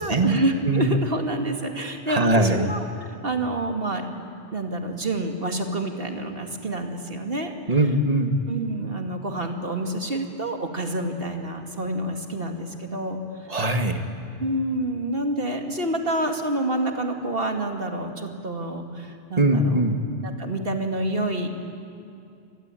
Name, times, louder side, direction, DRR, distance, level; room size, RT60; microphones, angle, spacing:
voice 1, 0.0-2.8 3.1-4.1 4.5-7.5 8.5-13.2 14.4-19.8 20.4-21.5, right 1 dB, 55° right, 4 dB, 2.3 m, -28 dB
voice 2, 2.1-2.7 7.7-8.4 13.5-14.0 19.4-20.0, right 1 dB, 35° right, 6 dB, 1.8 m, -21 dB
26.5 x 21.5 x 9.0 m, 2.5 s
omnidirectional pair, 1.2 m